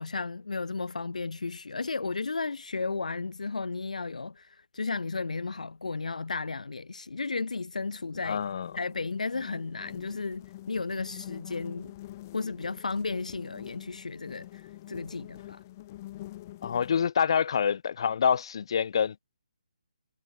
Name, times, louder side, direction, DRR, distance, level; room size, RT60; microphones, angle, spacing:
voice 1, 0.0-8.4 8.7-11.9 12.3-15.6, left 4 dB, 80° left, 1.9 m, -34 dB
sound 1, 7.8-17.0, left 15 dB, 25° left, 3.4 m, -46 dB
voice 2, 8.2-8.7 16.6-19.2, left 7 dB, 45° left, 3.3 m, -26 dB
hypercardioid pair, 165°, 4 cm